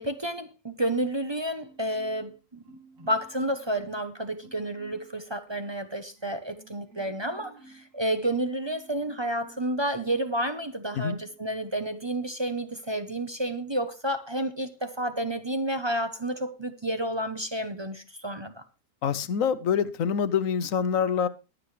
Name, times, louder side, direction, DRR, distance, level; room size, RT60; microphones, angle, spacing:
voice 1, 0.0-2.6 3.0-18.6, right 1 dB, 25° right, 0.8 m, -30 dB
Marimba xylophone, 1.6-2.4 2.6-4.1 4.4-5.1 5.5-9.7 10.0-10.8 11.2-11.4, right 2 dB, 80° right, 3.2 m, -54 dB
voice 2, 19.0-21.3, left 7 dB, 85° left, 1.2 m, -25 dB
21.5 x 7.6 x 3.2 m
omnidirectional pair, 1.4 m